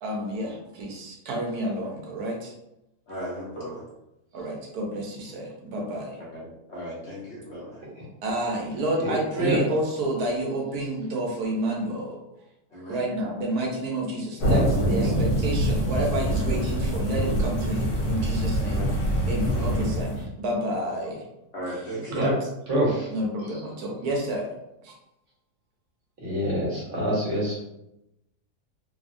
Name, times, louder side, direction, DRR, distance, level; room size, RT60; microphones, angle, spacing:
voice 1, 0.0-2.5 4.3-6.2 8.2-12.2 12.9-18.8 19.3-21.2 22.1-22.5 23.1-24.5 24.8-24.9, right 1 dB, 75° right, -1 dB, 1.2 m, -29 dB
voice 2, 3.1-3.9 6.2-7.9 12.7-13.0 15.0-15.2 18.6-19.0 19.4-19.7 21.5-22.3, equal, 60° left, -5 dB, 0.8 m, -37 dB
voice 3, 9.0-9.6 22.1-22.3 22.7-23.1 26.2-27.6, equal, 55° right, -6 dB, 1.4 m, -26 dB
sound 1, 14.4-20.2, equal, 80° left, 1.4 m, -25 dB
3.4 x 2.0 x 2.5 m, 0.88 s
omnidirectional pair, 1.6 m